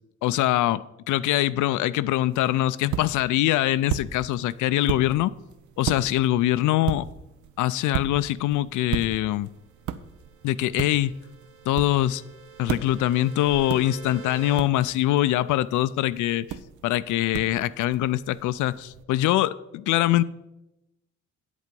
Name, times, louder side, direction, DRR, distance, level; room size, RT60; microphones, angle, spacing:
voice 1, 0.2-5.3 5.8-7.1 7.6-9.5 10.4-11.2 11.7-12.2 12.6-16.5 16.8-20.2, left 14 dB, 80° left, 16 dB, 0.4 m, -23 dB
sound 1, 2.3-19.0, right 9 dB, 75° right, 0.6 m, -37 dB
sound 2, 9.7-14.6, right 5 dB, 50° right, 1.1 m, -46 dB
8.2 x 8.0 x 5.2 m, 0.93 s
cardioid pair, 90°, 30 cm